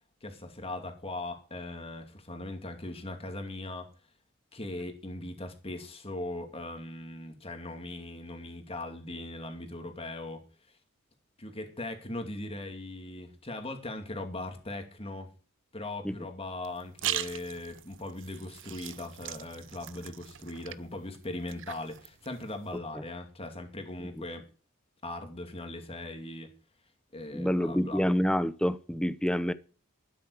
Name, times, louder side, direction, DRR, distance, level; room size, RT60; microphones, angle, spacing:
voice 1, 0.2-3.9 4.5-10.4 11.4-15.3 15.7-24.5 25.0-26.5 27.1-28.0, left 2 dB, 25° left, 2.6 m, -39 dB
sound 1, 16.6-22.8, right 12 dB, 60° right, 0.7 m, -40 dB
voice 2, 27.3-29.5, equal, 5° left, 0.6 m, -27 dB
12.5 x 9.9 x 4.8 m
head